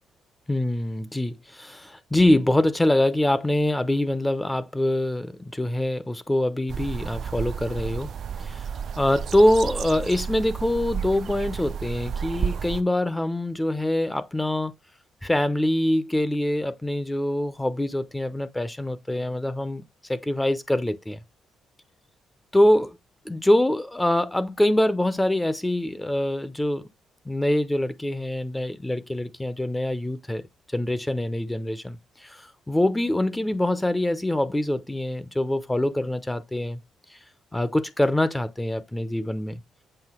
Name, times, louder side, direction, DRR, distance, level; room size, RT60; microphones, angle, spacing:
voice 1, 0.5-8.1 8.4-8.6 9.0-14.7 15.2-19.8 20.1-21.2 22.5-23.0 23.2-26.9 27.3-30.5 30.7-36.8 37.5-39.6, left 1 dB, 10° left, 0.7 m, -24 dB
sound 1, 6.7-12.8, right 7 dB, 60° right, 0.5 m, -32 dB
7.8 x 2.8 x 6.0 m
cardioid pair, 90°, 0 cm